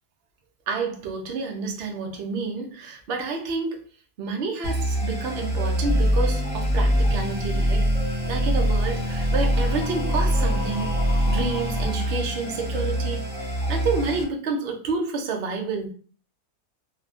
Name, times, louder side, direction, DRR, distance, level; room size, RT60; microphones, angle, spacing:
voice 1, 0.7-3.8 4.2-7.9 8.3-10.9 11.3-13.3 13.7-15.9, right 4 dB, 60° right, 0.7 m, -29 dB
sound 1, 4.6-14.2, equal, 5° left, 1.0 m, -24 dB
3.4 x 2.3 x 2.5 m
omnidirectional pair, 1.6 m